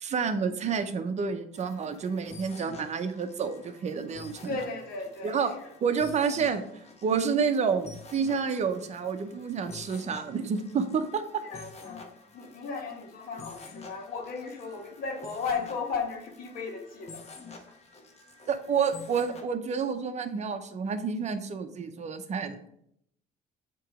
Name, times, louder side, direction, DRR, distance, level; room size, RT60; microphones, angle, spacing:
voice 1, 0.0-4.6 5.2-5.5 5.8-6.6 7.0-11.4 18.5-22.6, right 6 dB, 40° right, 9 dB, 0.7 m, -29 dB
sound 1, 1.5-19.4, left 4 dB, 40° left, 1.2 m, -49 dB
voice 2, 4.5-5.7 11.4-17.2, left 5 dB, 60° left, 2 dB, 1.5 m, -36 dB
7.5 x 3.0 x 4.8 m, 0.73 s
cardioid pair, 110°, 17 cm